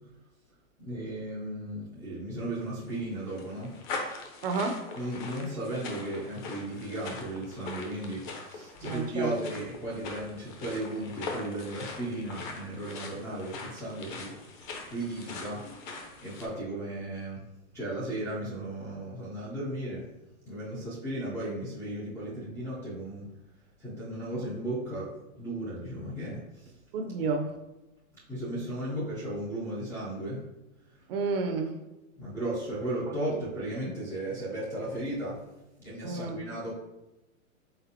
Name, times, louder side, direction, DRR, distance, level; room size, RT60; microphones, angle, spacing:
voice 1, 0.8-3.8 5.0-14.4 14.9-15.6 16.2-17.4 17.7-20.1 20.5-23.3 23.8-26.7 28.3-30.4 32.2-35.4 35.8-36.7, right 1 dB, 5° left, -9 dB, 0.4 m, -35 dB
sound 1, 2.6-16.5, left 3 dB, 35° left, 0.7 m, -42 dB
voice 2, 4.4-4.9 8.8-9.3 26.9-27.5 31.1-31.7 33.1-33.2 36.0-36.4, right 4 dB, 45° right, 5 dB, 0.6 m, -30 dB
4.3 x 3.7 x 2.6 m, 0.99 s
hypercardioid pair, 130°, 42 cm